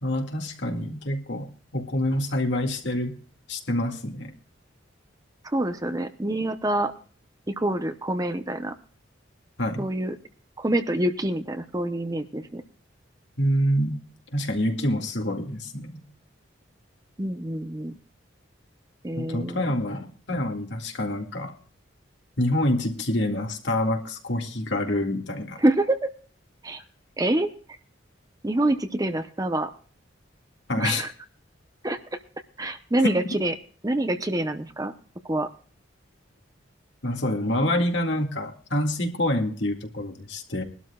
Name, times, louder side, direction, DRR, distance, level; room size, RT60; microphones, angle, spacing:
voice 1, 0.0-1.5 1.7-3.1 3.5-4.3 9.6-9.8 13.4-14.0 14.3-16.0 19.2-21.5 22.4-25.6 30.7-31.0 33.0-33.2 37.0-40.6, left 1 dB, 65° left, 3 dB, 2.1 m, -26 dB
voice 2, 5.4-6.9 7.5-8.7 9.8-10.2 10.6-12.6 17.2-18.0 19.0-19.7 25.6-26.1 26.6-26.8 27.2-27.5 28.4-29.7 30.8-31.1 31.8-32.0 32.6-33.5 33.8-34.9 35.3-35.5, right 1 dB, 20° right, 9 dB, 0.8 m, -26 dB
21.5 x 12.5 x 2.3 m, 0.42 s
head